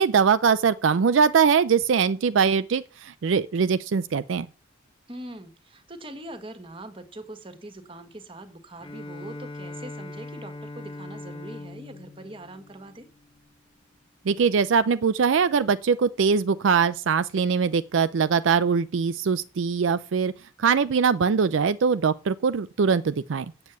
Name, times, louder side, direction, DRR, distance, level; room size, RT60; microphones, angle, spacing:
voice 1, 0.0-4.5 14.3-20.3 20.6-23.5, right 6 dB, 70° right, 0.4 m, -22 dB
voice 2, 5.1-13.1, right 1 dB, 25° right, 1.5 m, -42 dB
Bowed string instrument, 8.8-13.5, left 2 dB, 25° left, 1.0 m, -41 dB
7.9 x 7.4 x 8.1 m
head